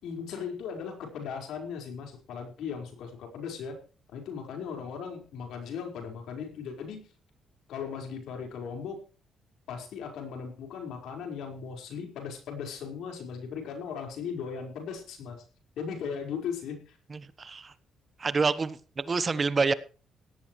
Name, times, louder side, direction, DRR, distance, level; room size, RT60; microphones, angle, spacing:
voice 1, 0.0-3.8 4.1-7.0 7.7-9.0 9.7-15.4 15.8-17.0, left 6 dB, 80° left, 3 dB, 4.9 m, -37 dB
voice 2, 17.1-17.7 18.2-19.7, right 4 dB, 35° right, 15 dB, 1.1 m, -27 dB
17.0 x 13.5 x 3.2 m, 0.36 s
cardioid pair, 90°, 0 cm